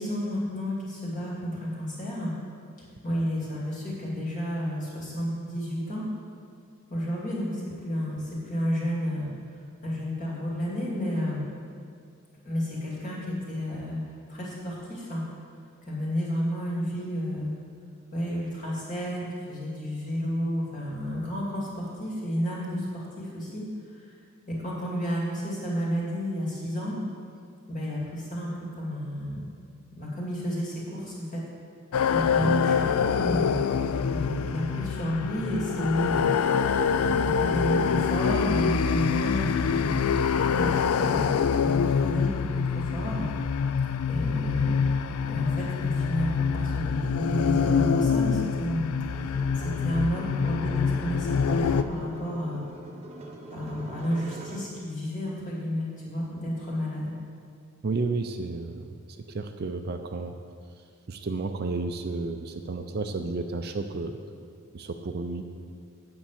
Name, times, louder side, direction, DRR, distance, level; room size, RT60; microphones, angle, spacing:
voice 1, 0.0-2.3 3.0-6.0 6.9-9.3 9.8-11.4 12.4-14.0 14.3-15.2 15.9-17.5 18.1-23.6 24.5-27.0 27.7-29.5 30.0-31.4 32.1-33.6 34.1-36.4 36.9-39.9 40.3-41.3 41.6-43.3 44.1-44.9 45.3-49.3 49.6-52.6 53.5-57.2, equal, 35° left, -5 dB, 2.5 m, -31 dB
sound 1, 31.9-51.8, left 6 dB, 75° left, 0.4 m, -25 dB
sound 2, 49.1-54.8, right 1 dB, 30° right, 0.8 m, -43 dB
voice 2, 57.8-58.9 59.3-60.3 61.1-64.1 64.7-65.4, right 3 dB, 45° right, 6 dB, 0.5 m, -31 dB
8.7 x 5.5 x 7.3 m, 2.3 s
head